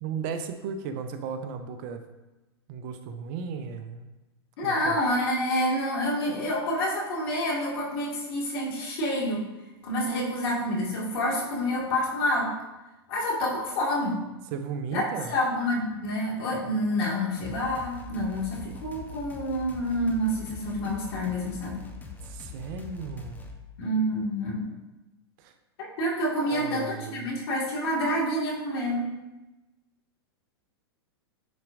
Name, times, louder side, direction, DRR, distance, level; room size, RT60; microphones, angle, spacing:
voice 1, 0.0-2.0 2.7-4.1 4.6-5.0 14.5-15.4 22.2-23.4 25.4-25.5 26.4-27.3, right 6 dB, 50° right, 8 dB, 0.7 m, -35 dB
voice 2, 4.6-9.4 9.8-12.5 13.1-14.2 14.9-21.8 23.8-24.7 25.8-29.1, equal, 60° left, -3 dB, 2.2 m, -28 dB
sound 1, 17.4-23.6, left 3 dB, 10° left, 0.9 m, -42 dB
9.3 x 4.4 x 2.6 m, 1.0 s
hypercardioid pair, 110°, 14 cm